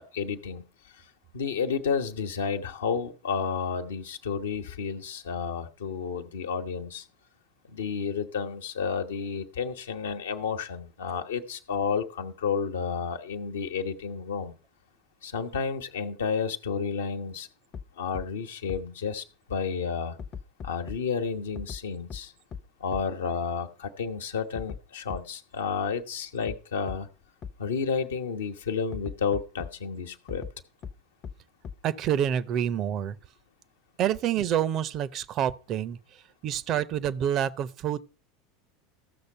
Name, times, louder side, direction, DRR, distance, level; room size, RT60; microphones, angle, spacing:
voice 1, 0.1-0.6 1.3-7.0 7.7-14.5 15.2-17.5 18.0-20.2 20.6-22.3 22.8-27.1 27.6-30.4, left 5 dB, 70° left, 1.1 m, -31 dB
sound 1, 17.7-17.8 18.1-18.2 18.7-18.8 20.2-21.0 21.6-21.8 22.1-22.2 22.5-22.6 22.9-23.0 24.6-24.8 25.1-25.2 26.5-26.6 26.9-27.0 27.4-27.5 28.9-29.7 30.3-30.5 30.8-30.9 31.2-31.3 31.6-31.7, left 7 dB, 35° left, 0.8 m, -37 dB
voice 2, 31.8-33.2 34.0-38.0, right 10 dB, 40° right, 0.6 m, -28 dB
14.5 x 6.6 x 5.5 m
figure-of-eight pair, 80°, 0 cm